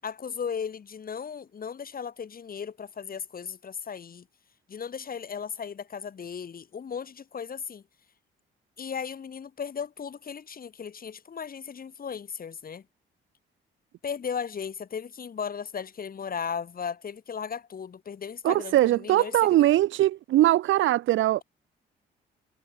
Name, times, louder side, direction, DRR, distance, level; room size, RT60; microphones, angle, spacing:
voice 1, 0.0-4.3 4.7-7.8 8.8-12.8 14.0-19.7, left 7 dB, 45° left, 7.1 m, -36 dB
voice 2, 18.4-21.4, right 14 dB, 80° right, 0.9 m, -21 dB
cardioid pair, 90°, 20 cm